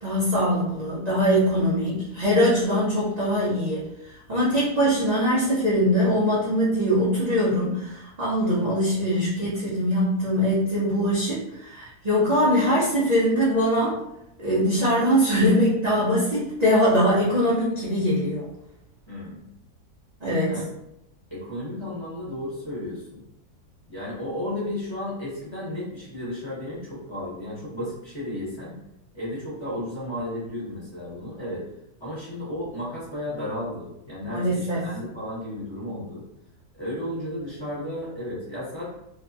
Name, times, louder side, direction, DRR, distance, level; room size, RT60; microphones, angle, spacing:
voice 1, 0.0-14.0 14.4-18.5 20.2-20.5 34.3-34.9, equal, 55° right, -8 dB, 0.4 m, -22 dB
voice 2, 19.1-19.5 20.5-20.7 21.3-23.2 23.9-28.8 29.1-31.6 32.0-36.2 36.7-38.8, left 1 dB, 20° left, -9 dB, 0.9 m, -33 dB
2.8 x 2.4 x 2.5 m, 0.85 s
omnidirectional pair, 1.6 m